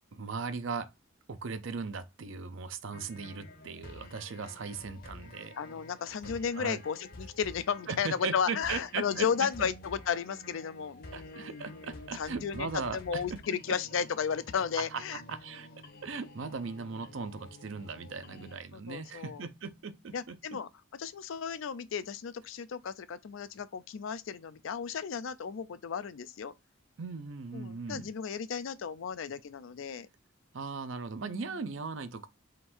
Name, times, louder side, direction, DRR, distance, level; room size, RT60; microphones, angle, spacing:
voice 1, 0.1-0.9 1.3-5.6 6.2-6.8 7.9-9.7 11.1-13.4 13.7-13.8 14.5-15.7 16.0-20.6 27.0-28.1 30.5-32.3, right 5 dB, 65° right, 0.5 m, -38 dB
sound 1, 2.9-18.6, left 2 dB, 45° left, 0.8 m, -50 dB
voice 2, 5.6-15.2 18.7-19.4 20.1-20.7 21.0-26.5 27.5-30.1 31.2-31.5, left 7 dB, 70° left, 0.4 m, -34 dB
3.7 x 2.6 x 4.3 m
head